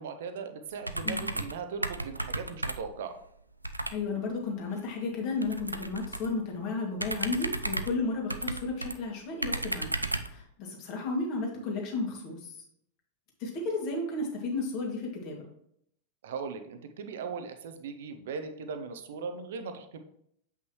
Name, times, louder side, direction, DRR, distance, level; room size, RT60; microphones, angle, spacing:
voice 1, 0.0-3.2 16.2-20.0, right 5 dB, 60° right, 8 dB, 0.8 m, -39 dB
sound 1, 0.8-1.6 1.8-3.0 3.6-4.0 5.4-6.3 7.0-9.0 9.4-10.4, right 2 dB, 85° right, 0.4 m, -34 dB
voice 2, 3.9-10.0 10.3-12.5 13.4-15.4, left 3 dB, 40° left, -1 dB, 2.2 m, -33 dB
7.8 x 5.6 x 3.1 m, 0.70 s
figure-of-eight pair, 90°, 0 cm